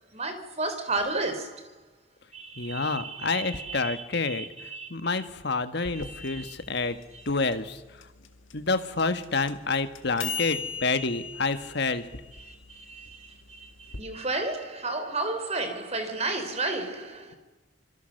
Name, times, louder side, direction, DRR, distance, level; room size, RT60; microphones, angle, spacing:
voice 1, 0.1-1.6 2.3-4.9 5.2-5.3 5.9-6.5 6.8-7.2 12.4-17.3, right 2 dB, 35° right, 3.8 m, -33 dB
voice 2, 2.6-4.5 4.9-7.0 7.3-7.8 8.5-12.0, left 3 dB, 55° left, 1.5 m, -28 dB
sound 1, 5.8-14.0, left 6 dB, 80° left, 2.1 m, -39 dB
26.5 x 23.5 x 6.6 m
head